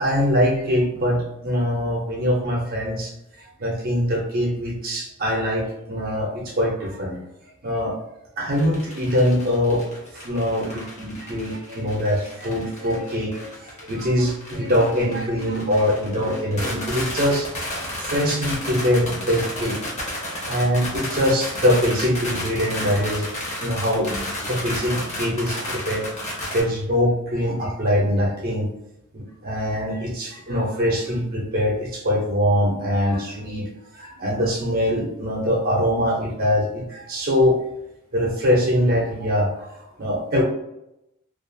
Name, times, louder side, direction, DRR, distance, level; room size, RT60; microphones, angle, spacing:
voice 1, 0.0-3.1 3.6-7.2 7.6-8.0 8.4-9.9 10.1-17.5 18.0-19.8 20.4-23.3 23.6-26.1 26.5-28.7 29.1-37.6 38.1-40.4, equal, 45° right, -2 dB, 0.6 m, -23 dB
sound 1, 8.5-26.6, left 1 dB, 35° left, 0.7 m, -32 dB
2.4 x 2.3 x 2.6 m, 0.84 s
head